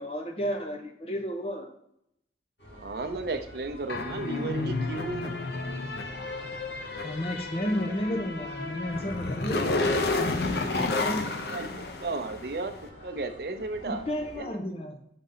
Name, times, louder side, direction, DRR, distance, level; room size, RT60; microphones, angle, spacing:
voice 1, 0.0-1.7 7.0-11.3 13.9-15.0, equal, 35° left, 4 dB, 0.9 m, -33 dB
sound 1, 2.6-14.4, equal, 85° left, 2.6 m, -48 dB
voice 2, 2.7-5.4 11.5-14.0 14.4-14.6, right 2 dB, 60° right, 8 dB, 0.6 m, -34 dB
sound 2, 3.9-12.6, left 2 dB, 65° left, 0.7 m, -31 dB
6.7 x 4.1 x 3.9 m, 0.75 s
head